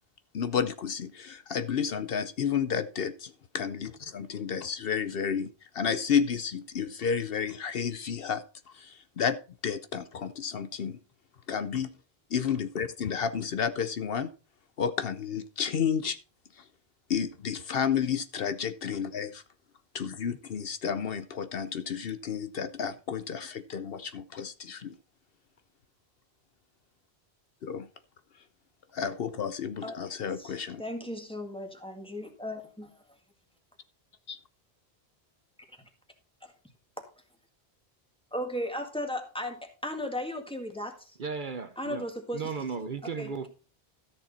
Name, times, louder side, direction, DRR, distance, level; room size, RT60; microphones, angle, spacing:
voice 1, 0.3-3.9 4.1-5.5 5.7-8.4 8.7-9.4 9.6-11.0 11.5-11.9 12.3-14.3 14.8-16.2 17.1-19.4 19.9-24.9 27.6-27.9 29.0-30.8 34.3-34.4, left 7 dB, 65° left, 0.9 m, -31 dB
voice 2, 30.4-33.0 36.4-36.5 38.3-41.2 41.8-42.5 43.2-43.3, left 1 dB, 5° left, 1.9 m, -36 dB
voice 3, 41.2-42.0 42.3-43.5, right 5 dB, 50° right, 1.0 m, -35 dB
13.5 x 6.7 x 4.1 m
omnidirectional pair, 1.1 m